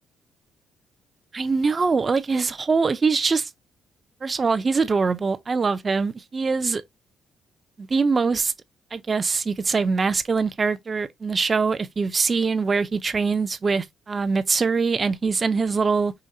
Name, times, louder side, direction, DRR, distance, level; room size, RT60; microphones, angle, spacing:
voice 1, 1.3-3.5 4.2-6.8 7.8-8.5 8.9-16.1, right 4 dB, 35° right, 0.6 m, -23 dB
5.0 x 2.8 x 2.7 m
cardioid pair, 90°, 0 cm